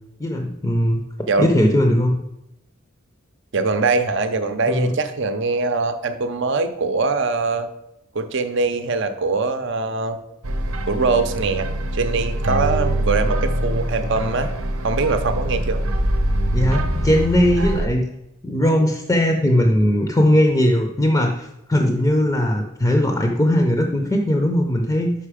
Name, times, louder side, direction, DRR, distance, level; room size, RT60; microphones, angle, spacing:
voice 1, 0.2-1.0 1.4-2.2 4.7-4.9 16.5-18.0 18.4-25.1, left 1 dB, 15° left, 3 dB, 0.5 m, -19 dB
voice 2, 3.5-7.7 8.1-10.2 10.9-14.5 14.8-15.8, right 3 dB, 55° right, 9 dB, 0.6 m, -22 dB
sound 1, 10.4-17.9, right 1 dB, 90° right, 0.8 m, -23 dB
5.7 x 5.4 x 4.9 m, 0.85 s
head